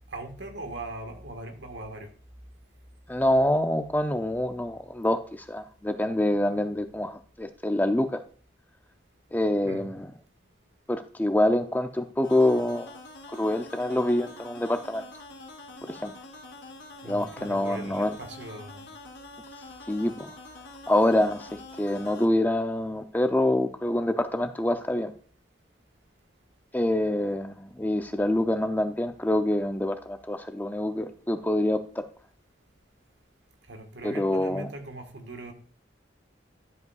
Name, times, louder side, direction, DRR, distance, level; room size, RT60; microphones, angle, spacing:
voice 1, 0.1-2.1 9.6-9.8 17.0-18.9 33.7-35.5, right 2 dB, 75° right, 5 dB, 1.5 m, -40 dB
voice 2, 3.1-8.2 9.3-10.1 10.9-12.9 13.3-15.0 15.8-16.1 17.0-18.1 19.9-20.3 20.9-25.1 26.7-32.1 34.0-34.7, left 1 dB, 10° left, 7 dB, 0.4 m, -26 dB
sound 1, 12.2-22.3, left 2 dB, 90° left, 2.0 m, -46 dB
12.0 x 5.3 x 2.3 m, 0.44 s
head